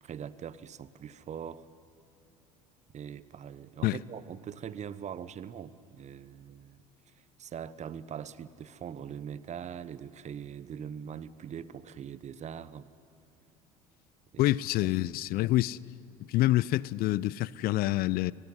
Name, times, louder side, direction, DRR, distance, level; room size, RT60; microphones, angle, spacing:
voice 1, 0.0-1.7 2.9-6.8 7.4-12.9 14.3-14.5 14.8-14.9, right 8 dB, 40° right, 1.1 m, -42 dB
voice 2, 14.4-15.8 16.3-18.3, left 16 dB, 55° left, 0.5 m, -27 dB
27.5 x 20.5 x 9.7 m
hypercardioid pair, 70°, 19 cm